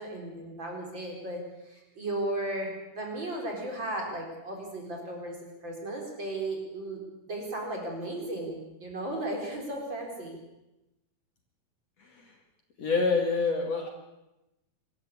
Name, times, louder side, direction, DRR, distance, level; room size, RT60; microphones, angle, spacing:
voice 1, 0.0-5.4 5.6-7.0 7.3-10.4, right 1 dB, 30° right, 0 dB, 4.8 m, -35 dB
voice 2, 12.0-12.3 12.8-13.9, left 4 dB, 50° left, 2 dB, 3.1 m, -27 dB
24.0 x 13.5 x 8.5 m, 0.96 s
omnidirectional pair, 4.0 m